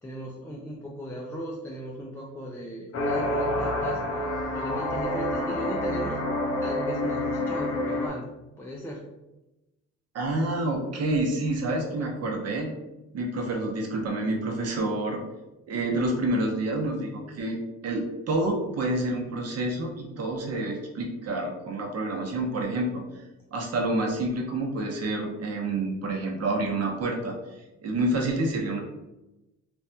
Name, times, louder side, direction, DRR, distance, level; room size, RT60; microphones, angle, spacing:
voice 1, 0.0-4.0 4.5-6.3 6.6-9.1 12.0-12.1, equal, 10° left, -3 dB, 0.4 m, -37 dB
sound 1, 2.9-8.1, left 1 dB, 55° left, 0.7 m, -28 dB
voice 2, 10.1-12.8 13.1-15.2 15.7-17.6 17.8-23.0 23.5-27.3 27.8-28.8, right 2 dB, 55° right, 1 dB, 0.8 m, -28 dB
3.3 x 2.2 x 2.6 m, 0.99 s
cardioid pair, 90°, 30 cm